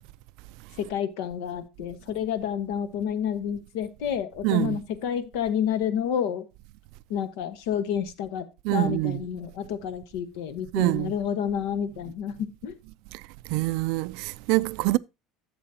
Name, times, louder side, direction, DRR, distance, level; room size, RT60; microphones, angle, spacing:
voice 1, 0.8-6.4 7.1-8.5 8.7-12.7, left 8 dB, 80° left, 1.2 m, -29 dB
voice 2, 4.4-4.8 8.6-9.2 10.7-11.1 13.5-15.0, right 20 dB, 70° right, 0.3 m, -25 dB
11.0 x 7.5 x 2.8 m
cardioid pair, 145°, 0 cm